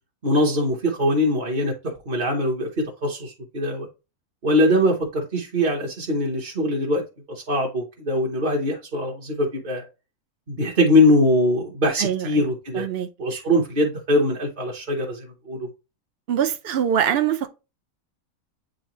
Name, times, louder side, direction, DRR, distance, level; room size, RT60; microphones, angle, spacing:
voice 1, 0.2-3.9 4.4-7.0 7.3-9.8 10.5-12.9 13.2-15.7, left 1 dB, 35° right, 1.0 m, -22 dB
voice 2, 12.7-13.1 16.3-17.5, right 9 dB, 70° right, 0.5 m, -23 dB
8.2 x 3.9 x 3.0 m
omnidirectional pair, 1.6 m